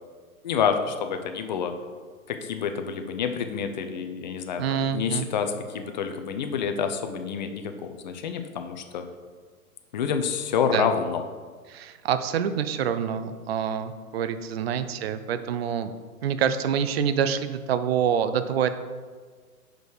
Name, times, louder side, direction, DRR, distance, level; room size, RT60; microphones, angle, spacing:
voice 1, 0.4-1.7 2.3-9.0 9.9-11.2, left 7 dB, 30° left, 7 dB, 0.5 m, -28 dB
voice 2, 4.6-5.3 10.7-10.9 11.7-15.9 16.2-18.7, right 8 dB, 45° right, 11 dB, 0.5 m, -26 dB
6.2 x 5.2 x 4.9 m, 1.5 s
figure-of-eight pair, 125°, 44 cm